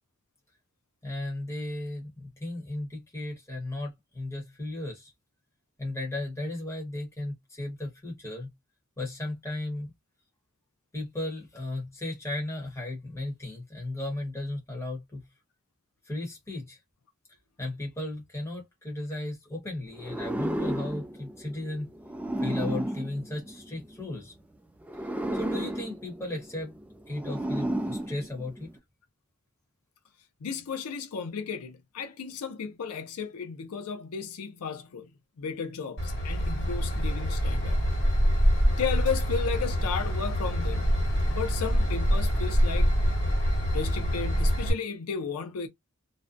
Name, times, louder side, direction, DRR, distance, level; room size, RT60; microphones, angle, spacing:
voice 1, 1.0-5.1 5.8-8.5 9.0-9.9 10.9-15.2 16.1-16.8 17.6-21.9 22.4-24.3 25.3-26.8 27.1-28.7, left 1 dB, 10° left, 1.0 m, -35 dB
sound 1, 20.0-24.1 24.8-28.8, right 1 dB, 5° right, 0.3 m, -33 dB
voice 2, 30.4-37.8 38.7-43.0 43.7-45.7, left 6 dB, 85° left, 0.5 m, -34 dB
Train / Engine, 36.0-44.7, equal, 50° left, 1.1 m, -25 dB
2.5 x 2.2 x 2.5 m
head